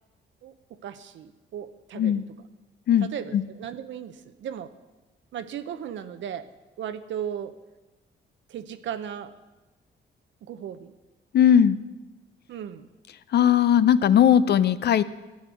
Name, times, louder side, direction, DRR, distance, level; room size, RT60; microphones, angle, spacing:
voice 1, 0.4-2.2 3.0-4.7 5.3-6.5 6.8-7.5 8.5-9.3 10.4-10.9 12.5-12.9, right 9 dB, 70° right, 11 dB, 0.8 m, -36 dB
voice 2, 2.9-3.4 11.3-11.8 13.3-15.0, left 9 dB, 55° left, 15 dB, 0.5 m, -19 dB
12.5 x 8.6 x 6.2 m, 1.1 s
cardioid pair, 90°, 20 cm